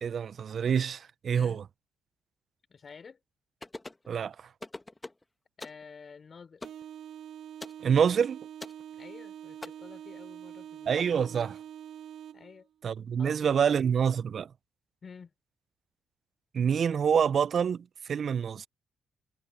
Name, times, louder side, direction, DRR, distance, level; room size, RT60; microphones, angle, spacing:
voice 1, 0.0-1.6 4.1-4.5 7.8-8.4 10.9-11.6 12.8-14.5 16.5-18.7, right 7 dB, 50° right, 0.4 m, -27 dB
voice 2, 2.7-3.2 5.6-6.6 8.9-11.6 12.3-12.7 13.2-13.8 15.0-15.3, left 5 dB, 40° left, 3.8 m, -50 dB
sound 1, 3.6-4.1 4.6-5.2 5.6-5.8 6.6-6.8 7.6-7.8 8.6-8.8 9.6-9.7, left 2 dB, 15° left, 1.0 m, -42 dB
sound 2, 6.6-12.6, right 10 dB, 75° right, 2.4 m, -45 dB
cardioid pair, 90°, 0 cm